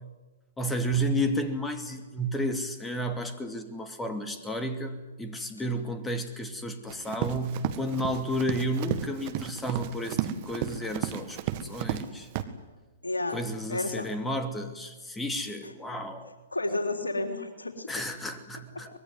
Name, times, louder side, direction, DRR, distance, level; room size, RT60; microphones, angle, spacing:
voice 1, 0.6-12.3 13.3-16.3 17.9-18.9, equal, 10° left, 7 dB, 2.6 m, -32 dB
Run, 6.9-12.1 12.3-12.4, right 12 dB, 40° right, 1.8 m, -33 dB
voice 2, 13.0-13.4 13.7-14.1 15.6-15.7 16.5-17.9 18.8-18.9, left 2 dB, 80° left, 4 dB, 3.6 m, -31 dB
24.5 x 21.0 x 9.7 m, 1.2 s
figure-of-eight pair, 115°, 0 cm